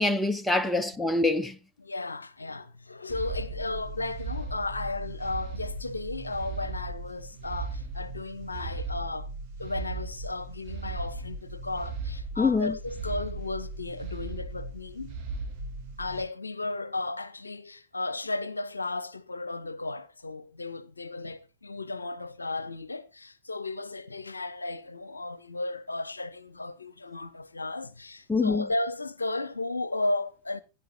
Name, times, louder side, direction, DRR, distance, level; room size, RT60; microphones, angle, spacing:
voice 1, 0.0-1.6 12.4-12.8 28.3-28.7, left 3 dB, 5° left, 0.8 m, -25 dB
voice 2, 1.8-9.3 9.6-15.2 16.0-30.6, left 2 dB, 80° left, 0.7 m, -34 dB
sound 1, 3.1-16.2, right 3 dB, 40° right, 3.4 m, -37 dB
16.0 x 9.3 x 2.8 m
figure-of-eight pair, 90°, 0 cm